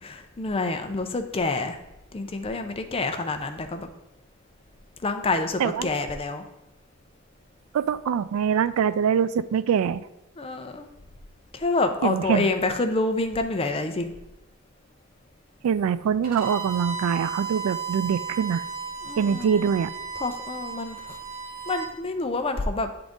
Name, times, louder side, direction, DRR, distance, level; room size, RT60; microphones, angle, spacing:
voice 1, 0.0-1.8 2.1-3.9 5.0-6.5 10.4-10.9 11.5-14.1 19.0-19.7 20.2-21.2 21.7-22.9, left 3 dB, 25° left, 7 dB, 0.5 m, -27 dB
voice 2, 7.7-10.0 12.0-12.5 15.6-18.6 19.2-19.9, right 7 dB, 80° right, 16 dB, 0.3 m, -24 dB
Bowed string instrument, 16.2-21.9, right 5 dB, 40° right, 1.5 m, -34 dB
8.9 x 3.9 x 3.6 m, 0.90 s
head